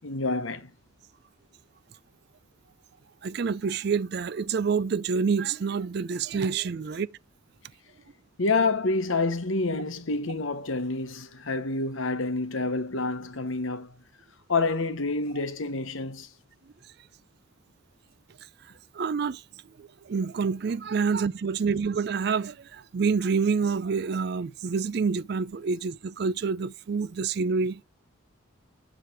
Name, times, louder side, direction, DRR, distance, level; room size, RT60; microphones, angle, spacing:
voice 1, 0.0-0.7 8.4-14.0 14.5-16.3, left 3 dB, 75° left, 1.1 m, -28 dB
voice 2, 3.2-7.1 18.9-19.4 19.8-27.8, right 5 dB, 50° right, 0.4 m, -27 dB
7.6 x 4.8 x 4.4 m
head